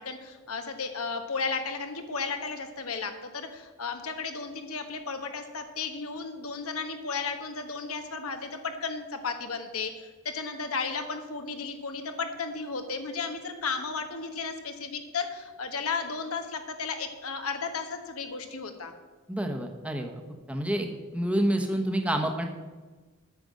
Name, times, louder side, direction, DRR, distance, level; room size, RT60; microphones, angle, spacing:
voice 1, 0.0-18.9, left 4 dB, 80° left, 6 dB, 1.3 m, -34 dB
voice 2, 19.3-20.1 20.5-22.4, right 1 dB, 5° right, 3 dB, 1.0 m, -28 dB
9.2 x 6.8 x 7.6 m, 1.3 s
head